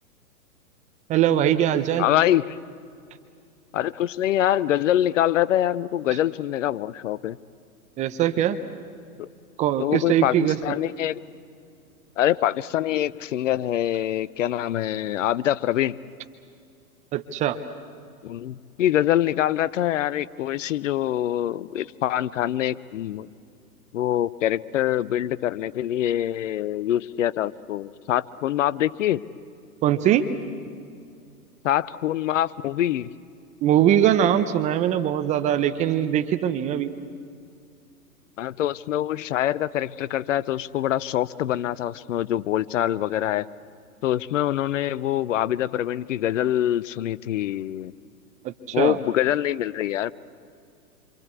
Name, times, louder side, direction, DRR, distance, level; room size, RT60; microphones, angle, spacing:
voice 1, 1.1-2.1 8.0-8.6 9.6-10.6 17.1-17.6 29.8-30.3 33.6-36.9 48.4-49.0, right 10 dB, 15° right, 10 dB, 0.6 m, -21 dB
voice 2, 2.0-2.6 3.7-7.4 9.2-9.3 9.8-10.4 10.6-11.2 12.2-16.0 18.2-23.3 23.9-29.2 31.6-33.1 38.4-43.5 44.0-47.9 48.7-50.1, left 12 dB, 55° left, 18 dB, 0.7 m, -24 dB
26.5 x 26.5 x 8.3 m, 2.4 s
hypercardioid pair, 120°, 46 cm